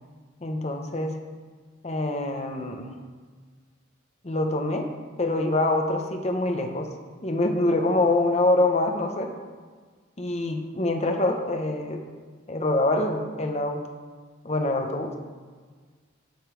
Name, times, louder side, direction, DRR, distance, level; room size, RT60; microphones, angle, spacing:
voice 1, 0.4-1.2 1.8-3.0 4.2-4.9 5.2-6.9 7.2-9.3 10.2-12.1 12.5-13.8 14.4-15.2, left 2 dB, 35° left, 4 dB, 0.7 m, -25 dB
9.2 x 5.1 x 4.9 m, 1.5 s
head